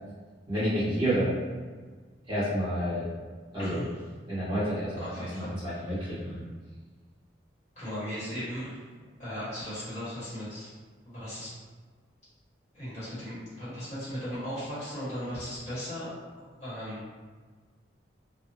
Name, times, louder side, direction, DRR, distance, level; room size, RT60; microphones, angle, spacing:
voice 1, 0.5-1.3 2.3-3.1 3.5-3.8 4.3-5.0 5.3-6.4, equal, 25° right, -14 dB, 1.5 m, -29 dB
voice 2, 3.6-3.9 5.0-6.3 7.7-8.8 9.2-10.7 11.0-11.5 12.7-16.1 16.6-17.0, equal, 40° left, -12 dB, 1.4 m, -37 dB
2.9 x 2.3 x 2.7 m, 1.5 s
head